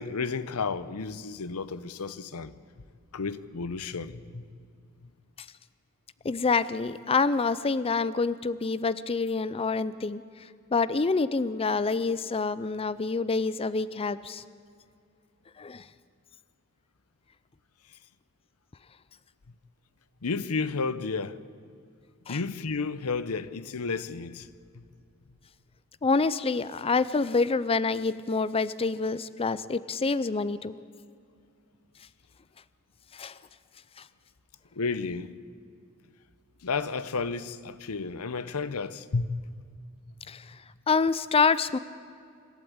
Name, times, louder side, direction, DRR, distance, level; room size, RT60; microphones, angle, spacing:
voice 1, 0.0-2.5 3.1-4.4 20.2-21.4 22.3-24.5 24.8-24.9 34.8-35.3 36.6-39.5, left 4 dB, 75° left, 0.8 m, -32 dB
voice 2, 6.2-10.2 10.7-14.4 15.6-15.8 22.3-22.4 26.0-30.8 33.1-33.3 40.3-40.4 40.9-41.8, left 4 dB, 25° left, 0.5 m, -27 dB
26.0 x 12.5 x 8.6 m
head